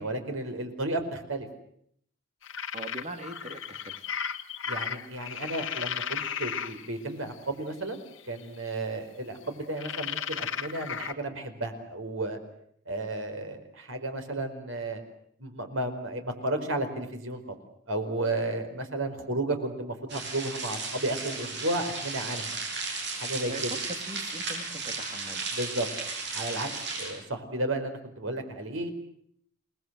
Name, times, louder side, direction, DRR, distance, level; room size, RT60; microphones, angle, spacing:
voice 1, 0.0-1.5 4.7-12.4 12.9-15.0 15.4-17.5 17.9-22.5 23.2-23.7 25.5-25.9 26.3-26.7 27.0-28.9, right 2 dB, 90° right, 6 dB, 4.8 m, -33 dB
sound 1, 2.4-6.9 7.9-8.4 9.8-11.1, left 8 dB, 70° left, 1.6 m, -35 dB
voice 2, 2.7-4.1 23.5-25.5, right 2 dB, 35° right, 7 dB, 2.6 m, -41 dB
sound 2, 20.1-27.1, right 4 dB, 60° right, 6.5 m, -35 dB
28.5 x 20.0 x 8.0 m, 0.69 s
head